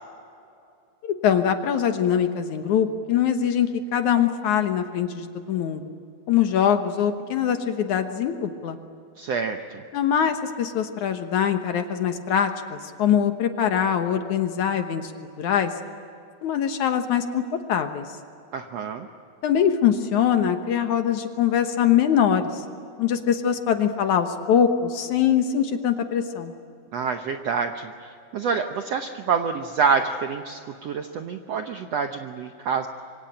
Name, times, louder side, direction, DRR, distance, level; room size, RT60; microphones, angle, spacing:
voice 1, 1.0-5.8 6.3-8.8 9.9-15.1 15.4-15.7 16.4-18.0 19.4-22.6 23.0-26.5, left 8 dB, 65° left, 7 dB, 2.3 m, -23 dB
voice 2, 9.2-9.8 18.5-19.1 26.9-32.9, right 6 dB, 70° right, 6 dB, 1.5 m, -27 dB
26.0 x 24.5 x 9.0 m, 2.5 s
omnidirectional pair, 4.2 m